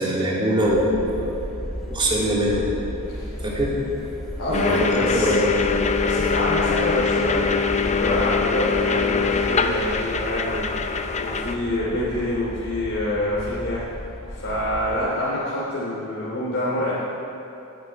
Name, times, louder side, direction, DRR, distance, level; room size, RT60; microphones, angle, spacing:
voice 1, 0.0-1.5 1.9-2.7 3.4-3.8 4.5-4.9 5.1-5.4, equal, 20° right, -5 dB, 2.7 m, -22 dB
sound 1, 0.6-15.0, equal, ahead, 2.5 m, -34 dB
voice 2, 4.4-5.3 5.9-13.8 14.3-16.9, left 1 dB, 60° left, -8 dB, 2.9 m, -26 dB
sound 2, 4.5-11.6, left 5 dB, 30° left, 0.6 m, -23 dB
20.0 x 9.0 x 4.6 m, 2.9 s
head